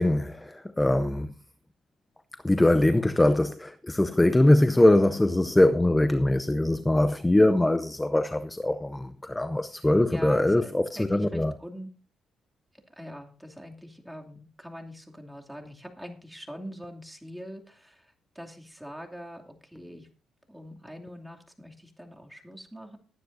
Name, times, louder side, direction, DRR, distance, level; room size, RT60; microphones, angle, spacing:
voice 1, 0.0-1.3 2.4-11.5, left 1 dB, 10° left, 0.7 m, -22 dB
voice 2, 10.1-11.9 12.7-20.1 20.5-23.0, equal, 5° right, 2.6 m, -43 dB
19.5 x 9.6 x 2.6 m
cardioid pair, 90°, 0 cm